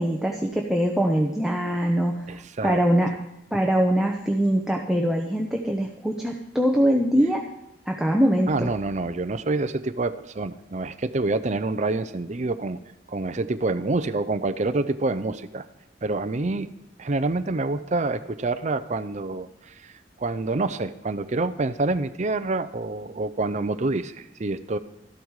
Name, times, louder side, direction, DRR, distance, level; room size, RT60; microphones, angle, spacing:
voice 1, 0.0-2.3 2.6-3.1 3.5-7.4 7.9-8.7, equal, ahead, 0 dB, 0.8 m, -23 dB
voice 2, 2.3-2.8 8.5-12.8 13.1-15.7 16.0-16.7 17.0-19.9 20.2-24.8, right 2 dB, 40° right, 10 dB, 0.6 m, -27 dB
13.5 x 12.0 x 4.8 m, 0.85 s
head